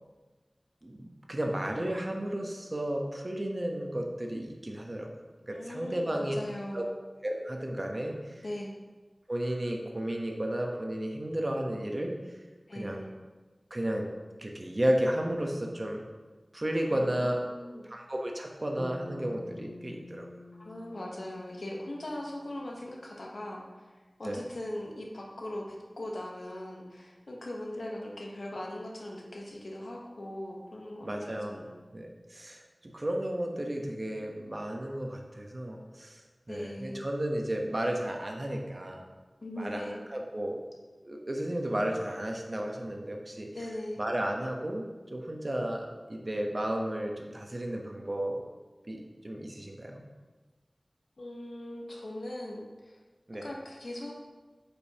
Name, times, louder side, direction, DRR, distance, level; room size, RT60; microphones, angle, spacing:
voice 1, 0.8-5.1 5.4-6.4 6.7-6.8 7.2-8.4 9.3-12.1 12.7-13.0 13.7-14.1 14.4-16.0 16.5-17.4 17.8-20.3 24.2-24.4 31.0-31.6 31.9-32.6 32.9-36.2 36.5-39.0 39.6-39.8 40.1-40.6 41.0-43.5 44.0-44.8 45.1-48.4 48.9-50.0 53.3-53.5, right 1 dB, 45° right, 1 dB, 1.1 m, -33 dB
voice 2, 5.5-6.9 8.4-8.7 12.7-13.1 16.9-17.9 20.6-23.6 24.2-31.9 36.5-37.0 39.4-40.0 43.5-44.0 51.2-53.0 53.4-54.1, left 1 dB, 85° left, -1 dB, 1.1 m, -40 dB
Bass guitar, 18.8-23.1, left 1 dB, 10° left, 0.7 m, -48 dB
8.7 x 5.3 x 2.9 m, 1.3 s
wide cardioid pair, 50°, 0 cm